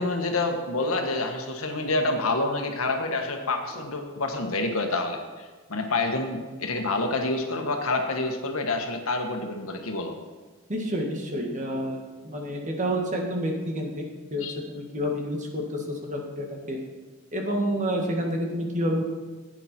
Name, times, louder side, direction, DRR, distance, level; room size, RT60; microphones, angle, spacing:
voice 1, 0.0-10.2 14.4-14.5, left 2 dB, 75° left, 4 dB, 1.6 m, -28 dB
voice 2, 10.7-12.0 12.2-14.0 14.3-16.8 17.3-19.0, equal, 35° right, 1 dB, 1.9 m, -29 dB
15.0 x 8.9 x 4.5 m, 1.3 s
head